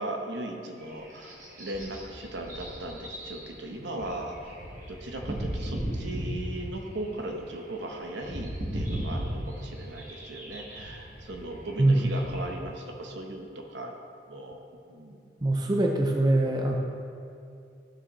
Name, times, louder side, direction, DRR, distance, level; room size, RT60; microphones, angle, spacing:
voice 1, 0.0-4.5 4.9-13.9 14.3-14.6 14.9-15.2, right 1 dB, 75° right, 2 dB, 1.0 m, -38 dB
sound 1, 0.8-12.5, equal, 45° right, 1.5 m, -37 dB
voice 2, 15.4-16.8, right 2 dB, 20° right, 1 dB, 0.5 m, -23 dB
12.5 x 6.1 x 3.1 m, 2.5 s
head